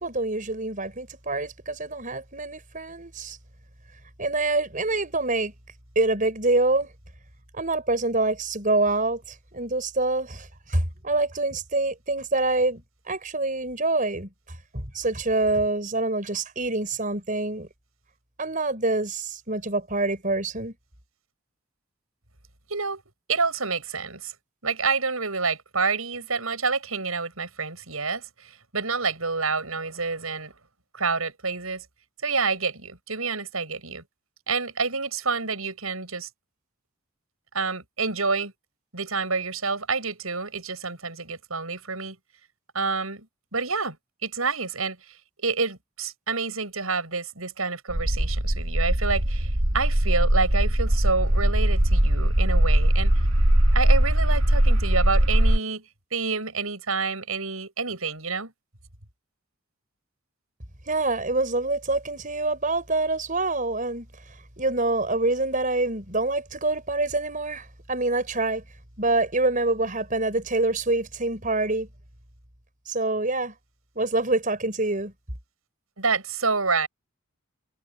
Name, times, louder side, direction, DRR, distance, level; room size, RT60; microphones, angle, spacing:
voice 1, 0.0-3.4 4.2-5.5 5.9-6.9 7.5-14.3 14.7-17.7 18.4-20.7 60.9-64.1 64.6-68.6 69.0-71.9 72.9-73.5 73.9-75.1, right 2 dB, 40° right, 6.2 m, -26 dB
voice 2, 22.7-23.0 23.3-24.3 24.6-30.5 30.9-31.8 32.2-34.0 34.5-36.3 37.5-38.5 38.9-42.2 42.7-43.3 43.5-44.0 44.2-45.0 45.4-53.1 53.7-55.8 56.1-58.5 76.0-76.9, right 4 dB, 90° right, 7.9 m, -28 dB
sound 1, 47.9-55.6, right 1 dB, 70° right, 2.5 m, -21 dB
head